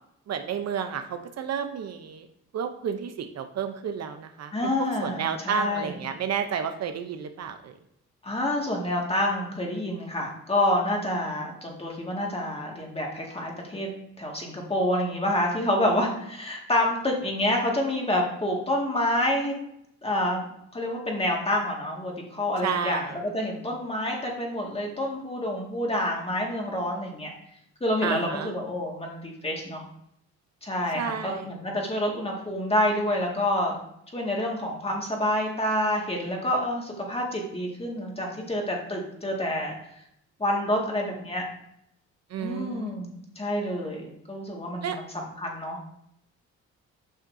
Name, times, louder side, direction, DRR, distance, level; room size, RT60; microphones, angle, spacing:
voice 1, 0.3-2.3 2.5-7.7 22.6-23.1 28.0-28.5 30.9-31.5 42.3-43.0 44.8-45.0, right 7 dB, 60° right, 7 dB, 0.7 m, -31 dB
voice 2, 4.5-6.0 8.2-13.9 14.2-19.6 20.0-20.5 20.7-27.3 27.8-29.8 30.6-33.8 34.1-39.8 40.4-41.4 42.4-45.8, left 1 dB, 20° left, 0 dB, 1.9 m, -28 dB
8.5 x 5.8 x 2.7 m, 0.74 s
cardioid pair, 90°, 30 cm